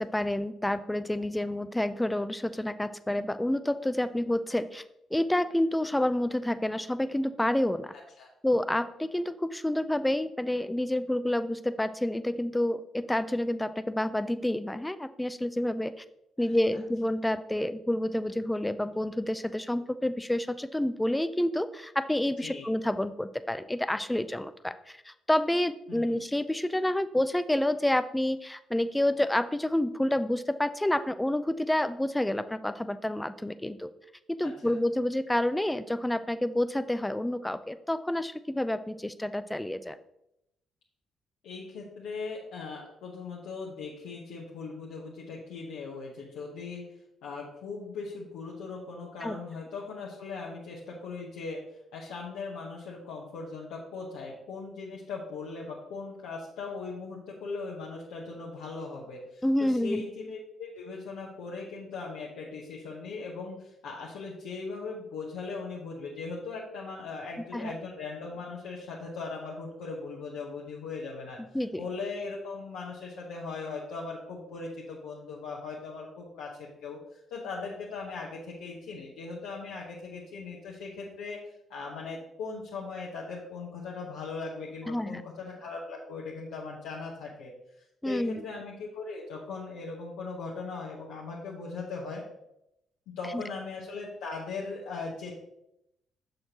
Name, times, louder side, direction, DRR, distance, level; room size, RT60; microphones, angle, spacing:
voice 1, 0.0-4.8 5.1-7.9 8.4-16.0 16.4-33.9 34.3-40.0 49.2-49.4 59.4-60.0 67.5-67.7 71.5-71.9 84.9-85.2 88.0-88.4 93.3-93.4, left 1 dB, 10° left, 13 dB, 0.4 m, -29 dB
voice 2, 25.9-26.2 34.4-34.8 41.4-46.8 47.2-51.6 51.9-71.4 71.8-81.4 81.7-87.5 88.0-92.2 93.2-95.3, left 4 dB, 80° left, -4 dB, 0.9 m, -39 dB
6.4 x 6.3 x 2.9 m, 0.82 s
hypercardioid pair, 50°, 0 cm